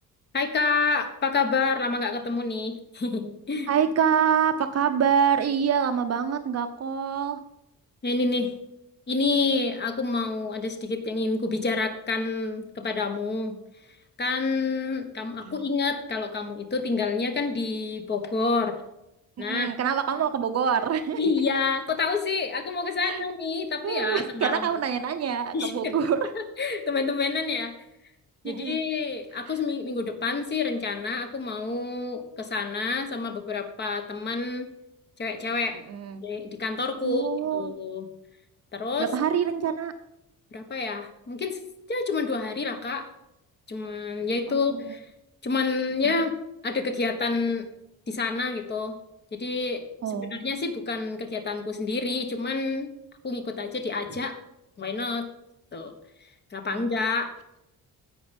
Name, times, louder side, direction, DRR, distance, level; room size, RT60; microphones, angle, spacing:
voice 1, 0.3-3.7 8.0-8.5 9.1-13.6 14.2-18.7 19.4-19.7 21.2-24.6 25.5-25.9 26.3-27.7 28.4-34.7 35.2-35.8 36.2-37.3 37.5-38.0 38.7-39.1 40.5-41.6 41.9-43.1 43.7-45.1 45.4-46.3 46.6-47.7 48.1-49.0 49.3-49.8 50.3-52.9 53.2-54.4 54.8-55.3 55.7-55.9 56.5-57.3, left 4 dB, 30° left, 7 dB, 1.3 m, -28 dB
voice 2, 3.7-7.4 15.4-15.6 19.4-21.2 23.0-23.2 23.8-26.3 28.4-28.8 29.4-29.6 35.9-36.2 37.0-37.7 39.0-39.9 44.5-44.9 46.0-46.2 50.0-50.4 56.7-56.8, right 7 dB, 50° right, 7 dB, 0.7 m, -26 dB
11.0 x 8.0 x 5.3 m, 0.87 s
wide cardioid pair, 170°, 33 cm